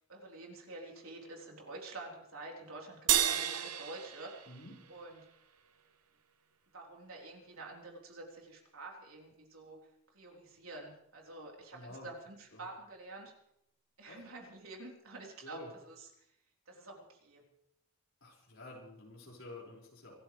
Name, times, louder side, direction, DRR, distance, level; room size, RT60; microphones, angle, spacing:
voice 1, 0.1-4.5 4.9-5.3 6.7-9.8 10.1-13.3 14.0-16.3 16.7-17.4, right 2 dB, 70° right, -1 dB, 4.0 m, -48 dB
sound 1, 3.1-5.7, right 11 dB, 85° right, 1.1 m, -33 dB
voice 2, 11.7-12.1 12.5-12.6 14.1-14.2 15.4-15.7 18.2-20.1, left 2 dB, 60° left, -3 dB, 5.6 m, -50 dB
25.0 x 14.5 x 3.4 m, 0.76 s
head